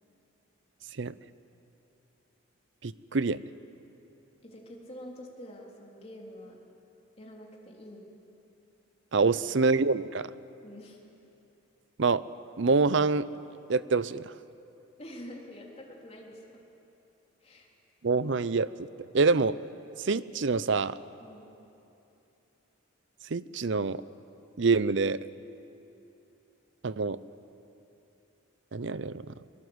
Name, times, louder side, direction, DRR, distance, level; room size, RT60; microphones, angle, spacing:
voice 1, 2.8-3.4 9.1-10.3 12.0-12.2 12.6-13.3 13.7-14.3 18.0-18.7 19.1-19.6 20.0-21.0 23.3-24.0 24.6-25.2 26.8-27.2 28.7-29.2, right 4 dB, 60° right, 17 dB, 0.6 m, -26 dB
voice 2, 4.4-6.6 7.2-8.1 9.4-9.5 10.6-11.0 15.0-16.6 17.4-17.7 21.2-21.5, equal, 30° left, -1 dB, 3.5 m, -46 dB
23.5 x 22.0 x 8.0 m, 2.9 s
head